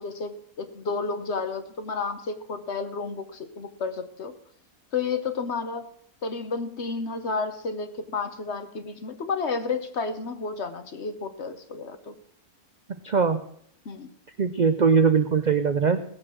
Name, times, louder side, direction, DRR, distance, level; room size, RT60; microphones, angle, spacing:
voice 1, 0.0-4.4 4.9-5.9 6.2-12.2 13.8-14.1, left 4 dB, 50° left, 9 dB, 1.2 m, -31 dB
voice 2, 13.0-13.4 14.4-16.0, right 5 dB, 80° right, 10 dB, 0.4 m, -21 dB
17.5 x 7.5 x 6.2 m, 0.68 s
omnidirectional pair, 1.6 m